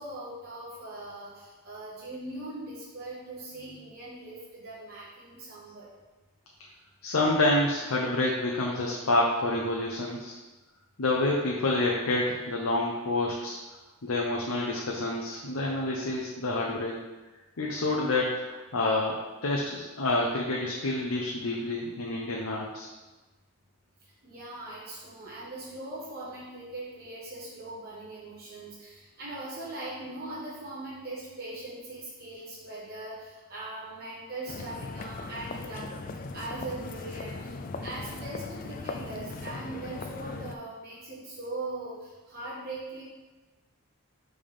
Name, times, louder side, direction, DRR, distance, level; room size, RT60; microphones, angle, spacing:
voice 1, 0.0-5.9 24.0-35.8 36.3-43.0, right 2 dB, 45° right, -8 dB, 1.2 m, -40 dB
voice 2, 7.0-10.4 11.0-13.6 14.0-16.9 17.6-22.9, left 2 dB, 75° left, -2 dB, 0.7 m, -28 dB
sound 1, 34.5-40.6, left 3 dB, 40° left, 0.3 m, -39 dB
5.2 x 3.5 x 5.4 m, 1.2 s
head